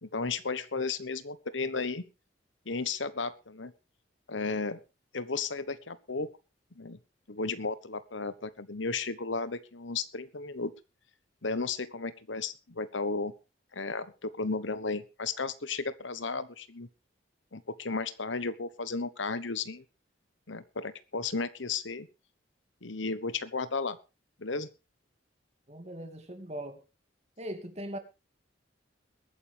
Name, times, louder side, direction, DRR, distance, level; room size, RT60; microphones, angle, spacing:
voice 1, 0.0-2.0 2.7-3.7 4.3-4.8 5.1-6.3 6.8-7.0 7.3-10.7 11.4-13.3 13.7-16.9 17.5-19.8 20.5-22.1 22.8-24.0 24.4-24.7, left 4 dB, 80° left, 14 dB, 1.2 m, -34 dB
voice 2, 25.7-26.8 27.4-28.0, right 1 dB, 35° right, 6 dB, 2.5 m, -40 dB
21.5 x 9.7 x 3.5 m, 0.30 s
head